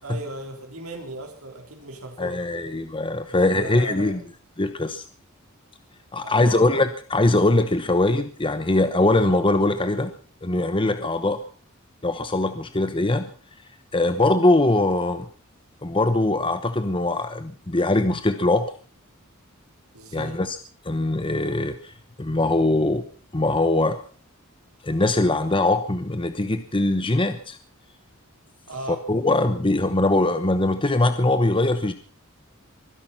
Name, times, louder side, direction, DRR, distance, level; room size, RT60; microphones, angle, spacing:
voice 1, 0.0-2.7 3.3-4.2 6.2-6.7 19.9-20.4 28.7-29.0, right 2 dB, 80° right, 2 dB, 4.0 m, -37 dB
voice 2, 2.2-4.2 4.6-5.0 6.1-10.1 10.4-11.4 12.0-13.3 13.9-15.3 15.8-18.7 20.1-20.6 20.8-21.9 22.2-23.0 23.3-24.0 24.8-27.6 28.9-31.9, left 2 dB, 25° left, 9 dB, 1.0 m, -22 dB
23.5 x 11.0 x 5.7 m, 0.42 s
head